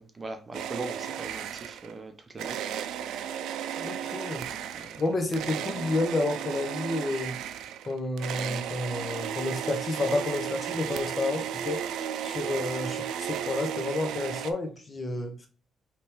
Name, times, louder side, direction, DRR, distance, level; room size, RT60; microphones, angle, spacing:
voice 1, 0.0-2.6 4.4-5.0, right 2 dB, 30° right, 0.7 m, -41 dB
sound 1, 0.5-2.0 2.4-14.5, right 9 dB, 85° right, 0.4 m, -34 dB
voice 2, 3.8-4.4 4.8-7.4 7.8-11.8 12.2-15.5, left 2 dB, 30° left, 1.1 m, -30 dB
5.2 x 3.1 x 3.0 m
cardioid pair, 90°, 0 cm